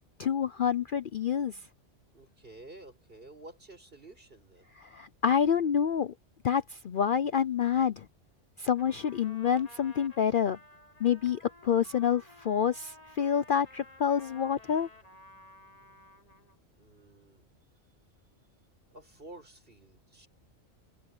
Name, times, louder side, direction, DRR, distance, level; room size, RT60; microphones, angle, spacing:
voice 1, 0.2-1.6 4.8-6.1 6.4-8.1 8.6-10.6 11.0-14.9, left 8 dB, 55° left, 0.7 m, -27 dB
voice 2, 2.1-4.7 16.8-17.5 18.9-20.3, right 2 dB, 45° right, 5.4 m, -51 dB
Trumpet, 8.7-16.6, left 1 dB, 30° left, 2.3 m, -54 dB
omnidirectional pair, 1.3 m